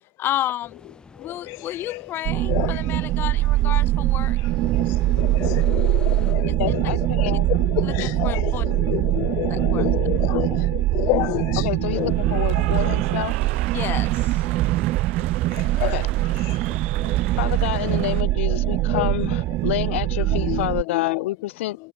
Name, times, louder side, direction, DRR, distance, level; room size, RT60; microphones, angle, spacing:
voice 1, 0.2-0.8 1.2-4.4 6.5-6.6 7.8-8.6 9.5-9.9 13.7-14.5, left 13 dB, 35° left, 1.4 m, -31 dB
sound 1, 0.6-6.4, left 4 dB, 15° left, 3.3 m, -50 dB
voice 2, 1.2-2.0 2.5-2.8 4.6-13.0 15.5-16.1 16.5-17.3 17.8-18.0 18.5-19.4 20.3-21.2, left 28 dB, 50° left, 0.7 m, -30 dB
sound 2, 2.2-20.8, right 17 dB, 40° right, 0.4 m, -22 dB
voice 3, 6.6-7.5 11.6-13.3 15.8-16.1 17.4-21.8, left 16 dB, 90° left, 1.2 m, -28 dB
Cheering / Applause, 11.9-18.2, right 21 dB, 75° right, 0.9 m, -36 dB
supercardioid pair, 150°, 7 cm